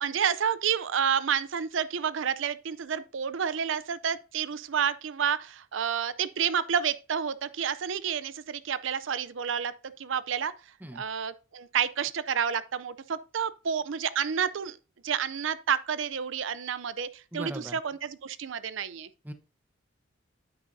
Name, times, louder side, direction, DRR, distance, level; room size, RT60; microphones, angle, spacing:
voice 1, 0.0-10.5 10.9-14.8 15.0-19.1, right 7 dB, 70° right, 0.5 m, -30 dB
voice 2, 17.3-17.8 19.2-19.3, right 1 dB, 10° right, 0.9 m, -38 dB
9.5 x 8.7 x 2.7 m
head